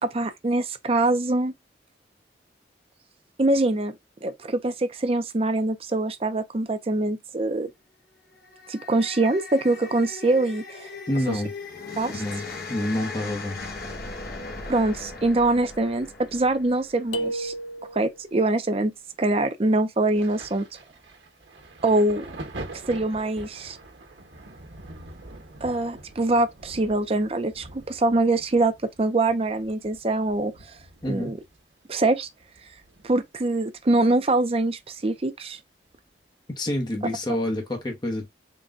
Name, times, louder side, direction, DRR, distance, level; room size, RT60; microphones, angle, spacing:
voice 1, 0.0-1.5 3.4-3.9 4.2-7.7 8.7-10.9 11.3-11.4 12.0-12.2 14.7-17.5 17.9-18.9 19.2-20.6 21.8-22.3 22.7-23.8 25.6-30.5 31.1-31.4 31.9-32.3 33.0-35.6, right 2 dB, 35° right, 0.5 m, -24 dB
sound 1, 8.3-17.6, left 3 dB, 55° left, 1.0 m, -38 dB
voice 2, 11.1-11.5 12.2-12.4 12.7-13.8 31.0-31.3 36.6-38.3, left 1 dB, 25° left, 0.8 m, -28 dB
sound 2, 17.1-18.2, right 1 dB, 90° left, 0.6 m, -31 dB
Thunder, 20.1-33.5 33.8-35.1 35.9-36.1, right 2 dB, 85° right, 1.2 m, -44 dB
3.9 x 2.2 x 3.6 m
head